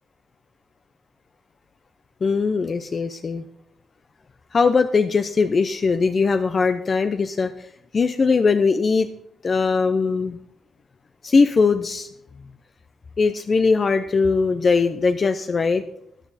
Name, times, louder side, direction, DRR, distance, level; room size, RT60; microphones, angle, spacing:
voice 1, 2.2-3.4 4.5-7.7 7.9-9.1 9.4-10.4 11.2-12.1 13.2-15.8, left 4 dB, 40° left, 9 dB, 0.6 m, -20 dB
14.0 x 9.4 x 4.2 m, 0.73 s
cardioid pair, 95°, 0 cm